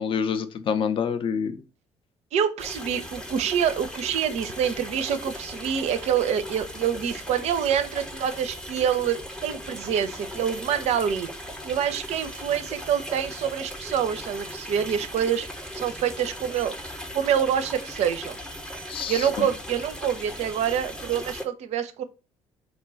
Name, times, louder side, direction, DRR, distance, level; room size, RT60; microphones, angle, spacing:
voice 1, 0.0-1.5 18.9-19.5, left 6 dB, 40° left, 0.4 m, -27 dB
voice 2, 2.3-11.3 11.6-15.5 15.7-16.8 17.1-18.4 19.1-22.0, right 8 dB, 50° right, 0.4 m, -26 dB
sound 1, 2.6-21.4, equal, 5° left, 0.7 m, -38 dB
3.0 x 2.2 x 3.9 m
figure-of-eight pair, 50°, 14 cm